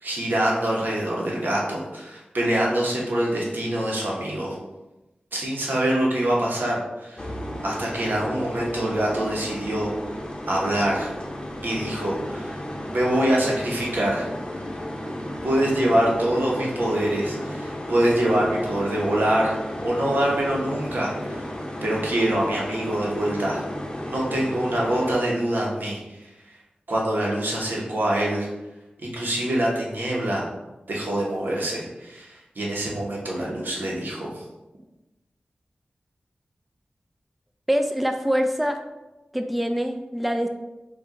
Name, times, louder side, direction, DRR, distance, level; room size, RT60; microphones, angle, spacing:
voice 1, 0.0-4.6 5.3-7.3 7.6-9.9 10.5-11.1 11.6-12.6 12.9-14.3 15.4-21.5 21.8-23.7 24.1-26.0 26.9-28.5 29.0-30.4 30.9-34.4, right 1 dB, 75° right, -3 dB, 1.1 m, -25 dB
sound 1, 7.2-25.2, left 1 dB, 25° left, 0.8 m, -34 dB
voice 2, 37.7-38.8 39.3-40.5, equal, ahead, 5 dB, 0.4 m, -24 dB
4.7 x 2.5 x 3.8 m, 1.0 s
cardioid pair, 40°, 3 cm